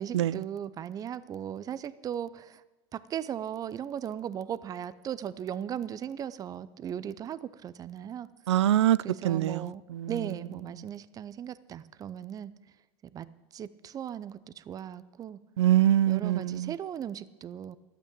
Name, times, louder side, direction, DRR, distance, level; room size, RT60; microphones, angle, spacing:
voice 1, 0.0-2.6 2.9-8.3 9.0-12.5 13.1-13.3 13.5-15.4 16.1-17.8, right 9 dB, 25° right, 0.6 m, -37 dB
voice 2, 8.5-9.0 9.2-9.6 9.9-10.1 15.6-16.7, right 12 dB, 90° right, 0.4 m, -23 dB
12.0 x 8.3 x 8.6 m
hypercardioid pair, 115°, 14 cm